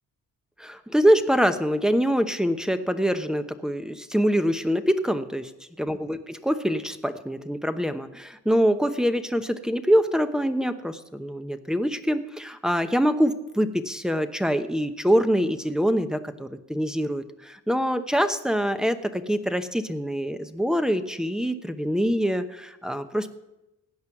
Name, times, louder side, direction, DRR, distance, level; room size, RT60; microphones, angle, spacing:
voice 1, 0.6-5.5 5.8-23.3, equal, ahead, 9 dB, 0.8 m, -24 dB
16.0 x 9.5 x 5.9 m, 0.94 s
cardioid pair, 100°, 31 cm